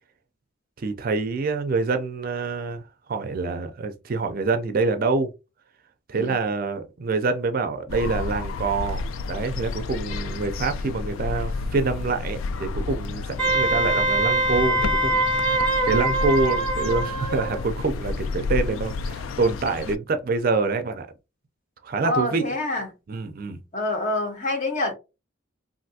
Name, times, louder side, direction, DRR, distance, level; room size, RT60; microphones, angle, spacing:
voice 1, 0.8-5.3 6.1-21.1 21.8-22.4 23.1-23.6, right 3 dB, 45° right, 0.4 m, -26 dB
sound 1, 7.9-20.0, left 4 dB, 85° left, 0.3 m, -31 dB
Wind instrument woodwind instrument, 13.4-17.6, right 2 dB, 5° left, 1.6 m, -23 dB
voice 2, 22.0-22.9 23.7-24.9, left 2 dB, 40° left, 0.9 m, -26 dB
3.3 x 2.5 x 2.7 m
head